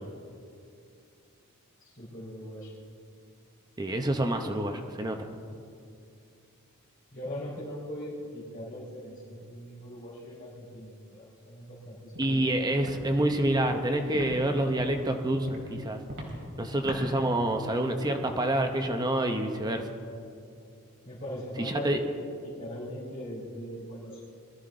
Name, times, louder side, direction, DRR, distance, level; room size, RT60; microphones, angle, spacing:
voice 1, 1.8-2.7 7.1-12.5 21.0-24.2, equal, 35° left, -11 dB, 3.7 m, -40 dB
voice 2, 3.8-5.3 12.2-16.0 16.6-19.8 21.6-22.0, right 1 dB, 20° right, 5 dB, 0.8 m, -27 dB
Walk footsteps, 12.1-12.3 12.8-13.0 13.4-13.6 14.1-14.3 14.8-15.0 15.5-15.6 16.1-16.3 16.8-17.0, right 1 dB, 55° right, 3.3 m, -40 dB
21.5 x 13.0 x 3.8 m, 2.4 s
head